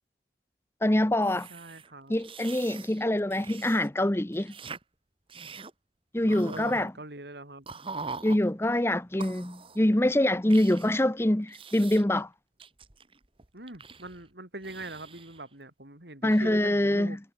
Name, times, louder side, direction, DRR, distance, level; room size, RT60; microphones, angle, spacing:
voice 1, 0.8-1.5 2.1-4.5 6.1-6.9 8.2-12.3 16.2-17.2, left 1 dB, 15° left, 0.8 m, -25 dB
sound 1, 1.2-3.9 4.1-4.8 5.3-5.7 6.3-6.9 7.7-8.4 9.2-9.8 10.5-11.0 11.5-12.2 12.6-14.3 14.6-15.4, right 4 dB, 30° right, 1.6 m, -43 dB
voice 2, 1.5-2.1 6.2-7.7 13.5-17.2, right 2 dB, 70° right, 4.5 m, -42 dB
head